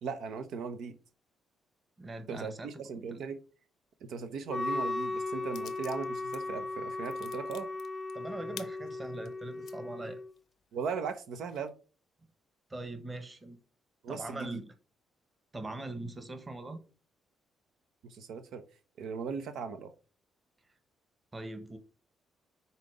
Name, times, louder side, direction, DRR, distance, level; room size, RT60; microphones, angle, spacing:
voice 1, 0.0-1.0 2.3-3.4 4.0-7.7 10.7-11.7 14.0-14.6 18.0-18.6 19.0-19.9, right 5 dB, 80° right, 0.7 m, -38 dB
voice 2, 2.0-3.2 8.1-10.2 12.7-13.6 14.1-14.7 15.5-16.8 21.3-21.8, right 2 dB, 25° right, 1.4 m, -42 dB
Wind instrument woodwind instrument, 4.5-10.3, left 2 dB, 15° left, 0.4 m, -37 dB
sound 1, 5.5-6.4 6.7-9.8 10.3-10.4 10.8-11.7, left 11 dB, 80° left, 0.6 m, -50 dB
5.7 x 3.9 x 5.0 m
cardioid pair, 90°, 0 cm